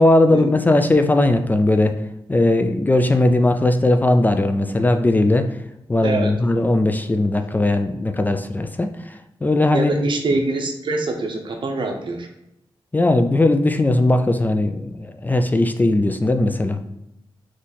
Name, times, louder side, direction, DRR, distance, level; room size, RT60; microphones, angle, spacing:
voice 1, 0.0-1.9 2.3-5.5 5.9-8.9 9.4-10.0 12.9-16.8, left 2 dB, 20° left, 7 dB, 0.3 m, -18 dB
voice 2, 6.0-6.3 9.7-12.3, right 2 dB, 60° right, 3 dB, 0.8 m, -24 dB
4.0 x 3.1 x 4.0 m, 0.84 s
wide cardioid pair, 115°, 9 cm